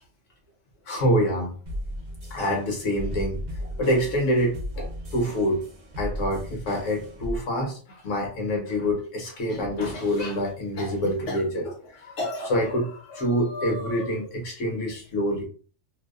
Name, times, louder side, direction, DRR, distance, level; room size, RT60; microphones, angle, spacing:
voice 1, 0.9-1.5 2.3-5.6 6.0-15.5, equal, 70° left, 1 dB, 1.0 m, -26 dB
sound 1, 1.7-7.4, equal, 55° right, 0.5 m, -35 dB
2.6 x 2.0 x 2.3 m, 0.42 s
omnidirectional pair, 1.4 m